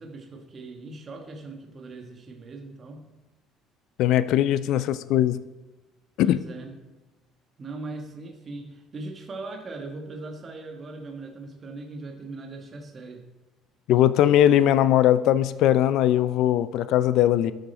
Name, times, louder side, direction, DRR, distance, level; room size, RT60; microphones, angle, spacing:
voice 1, 0.0-3.1 6.2-6.8 7.6-13.3, right 3 dB, 35° right, 2 dB, 1.3 m, -39 dB
voice 2, 4.0-5.4 6.2-6.4 13.9-17.5, left 12 dB, 70° left, 15 dB, 0.4 m, -20 dB
12.5 x 6.7 x 4.2 m, 1.1 s
cardioid pair, 115°, 0 cm